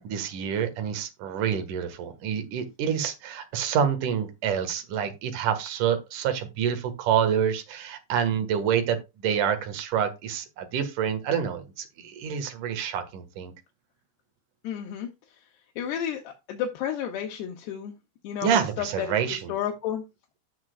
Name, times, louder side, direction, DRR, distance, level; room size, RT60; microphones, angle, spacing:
voice 1, 0.0-13.5 18.4-19.5, right 8 dB, 60° right, 2.3 m, -27 dB
voice 2, 14.6-15.1 15.8-17.9 18.2-19.2 19.5-20.0, left 9 dB, 70° left, 3.0 m, -31 dB
13.0 x 7.4 x 2.3 m
omnidirectional pair, 5.4 m